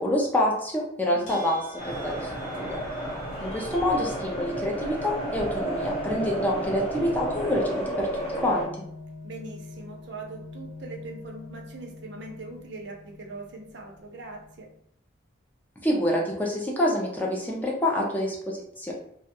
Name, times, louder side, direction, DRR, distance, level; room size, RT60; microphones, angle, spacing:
voice 1, 0.0-1.6 1.9-2.3 2.6-2.8 3.4-8.1 8.4-8.7 15.8-18.9, left 1 dB, 10° left, -2 dB, 0.3 m, -27 dB
voice 2, 1.1-1.5 9.2-14.7, right 3 dB, 60° right, 2 dB, 0.5 m, -41 dB
sound 1, 1.3-14.8, left 2 dB, 65° left, 0.7 m, -45 dB
sound 2, 1.8-8.6, right 1 dB, 30° left, 0.7 m, -32 dB
2.3 x 2.1 x 2.8 m, 0.71 s
head